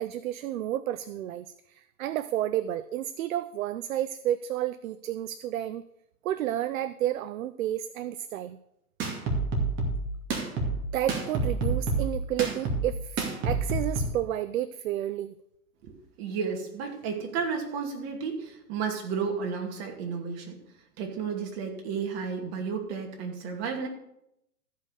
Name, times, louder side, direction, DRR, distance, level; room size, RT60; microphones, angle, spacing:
voice 1, 0.0-5.8 6.2-8.6 10.9-15.3, right 12 dB, 65° right, 14 dB, 0.6 m, -31 dB
sound 1, 9.0-14.0, right 3 dB, 25° right, 2.4 m, -28 dB
voice 2, 15.8-20.6 21.0-23.9, right 6 dB, 40° right, 2 dB, 2.5 m, -32 dB
14.0 x 5.6 x 6.5 m, 0.80 s
hypercardioid pair, 130°, 44 cm